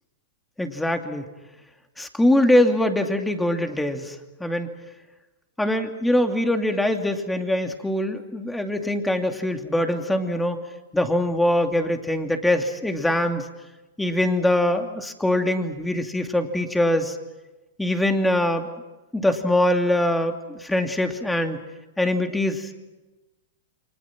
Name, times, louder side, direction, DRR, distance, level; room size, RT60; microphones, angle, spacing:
voice 1, 0.6-1.3 2.0-4.7 5.6-10.6 10.9-13.5 14.0-17.2 17.8-18.7 19.1-21.6 22.0-22.7, left 1 dB, 5° left, 5 dB, 2.7 m, -23 dB
29.5 x 25.0 x 6.1 m, 1.1 s
hypercardioid pair, 120°, 0 cm